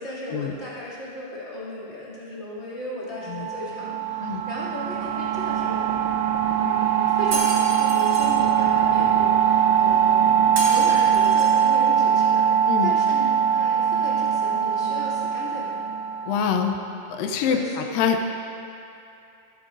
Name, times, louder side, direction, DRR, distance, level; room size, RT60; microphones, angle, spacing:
voice 1, 0.0-5.9 6.6-10.2 10.6-12.4 12.8-15.8 17.4-17.7, left 1 dB, 20° left, -9 dB, 2.5 m, -36 dB
sound 1, 3.2-16.6, right 8 dB, 65° right, 2.7 m, -21 dB
Shatter, 7.3-8.3 10.6-11.6, right 2 dB, 80° right, 4.3 m, -32 dB
voice 2, 16.3-16.8 17.1-17.6 17.9-18.4, left 7 dB, 90° left, 4 dB, 2.4 m, -24 dB
24.5 x 8.4 x 2.6 m, 2.7 s
omnidirectional pair, 3.8 m